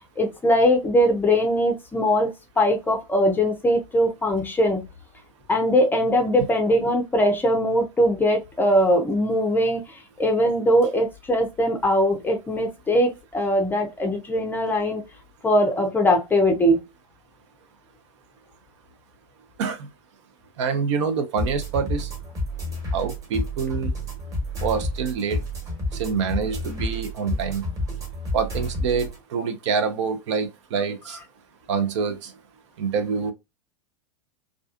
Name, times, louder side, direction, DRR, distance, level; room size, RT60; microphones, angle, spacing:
voice 1, 0.2-2.3 2.6-4.8 5.5-15.0 15.4-16.8, equal, 10° left, 0.5 m, -21 dB
voice 2, 20.6-22.1 22.9-23.9 24.6-25.4 25.9-27.6 28.3-31.2 31.7-32.3 32.8-33.3, right 5 dB, 55° right, 0.5 m, -26 dB
sound 1, 21.4-29.2, left 1 dB, 20° right, 1.2 m, -30 dB
2.4 x 2.4 x 2.4 m
figure-of-eight pair, 90°, 18 cm